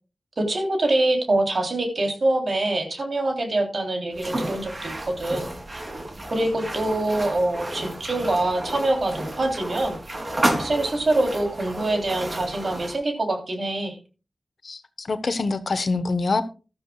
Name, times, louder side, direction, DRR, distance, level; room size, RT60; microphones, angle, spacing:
voice 1, 0.4-5.5 6.3-10.0 10.6-14.0, right 2 dB, 65° right, 3.3 m, -24 dB
sound 1, 4.1-13.0, right 1 dB, 45° right, 3.2 m, -31 dB
voice 2, 14.6-16.4, left 3 dB, 70° left, 1.1 m, -25 dB
14.5 x 12.5 x 2.3 m
cardioid pair, 45°, 0 cm